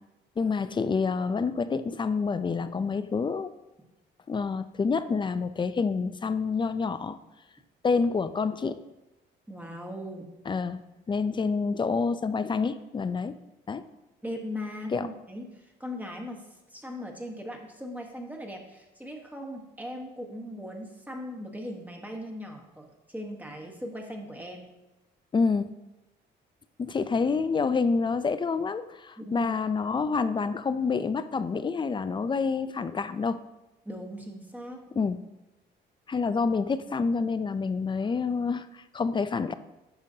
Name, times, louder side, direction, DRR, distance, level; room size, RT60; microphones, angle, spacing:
voice 1, 0.4-3.5 4.3-7.2 7.8-8.8 10.5-10.8 11.1-13.4 13.7-13.9 14.9-15.1 25.3-25.7 26.8-33.4 35.0-35.2 36.1-39.5, left 4 dB, 25° left, 13 dB, 0.4 m, -28 dB
voice 2, 9.5-10.3 14.2-24.7 29.2-29.6 33.8-34.8, equal, 10° right, 1 dB, 1.2 m, -39 dB
10.5 x 5.6 x 2.8 m, 1.0 s
cardioid pair, 90°, 20 cm